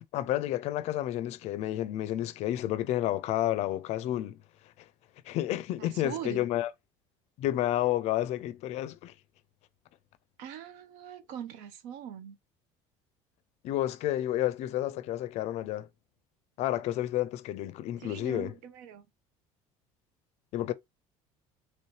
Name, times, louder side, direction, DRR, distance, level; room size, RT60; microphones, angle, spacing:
voice 1, 0.1-4.4 5.3-6.7 7.4-9.1 13.6-15.9 16.6-18.5 20.5-20.7, left 13 dB, 55° left, 0.4 m, -30 dB
voice 2, 5.8-6.5 10.4-12.4 18.0-19.1 20.7-20.8, right 9 dB, 75° right, 0.7 m, -41 dB
3.0 x 2.9 x 3.1 m
cardioid pair, 135°, 13 cm